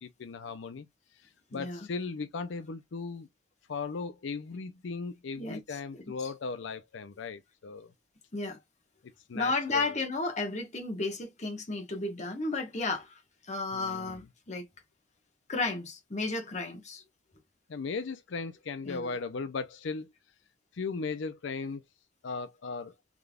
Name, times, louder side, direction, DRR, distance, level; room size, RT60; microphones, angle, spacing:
voice 1, 0.0-0.9 1.1-3.3 3.7-7.9 9.3-10.0 13.7-14.3 17.7-20.1 20.7-21.8 22.2-22.9, left 4 dB, 75° left, 0.5 m, -37 dB
voice 2, 1.5-1.9 5.4-5.8 8.3-8.6 9.3-13.2 13.5-14.7 15.5-17.0 18.8-19.1, left 3 dB, 35° left, 1.1 m, -33 dB
3.7 x 3.3 x 2.3 m
head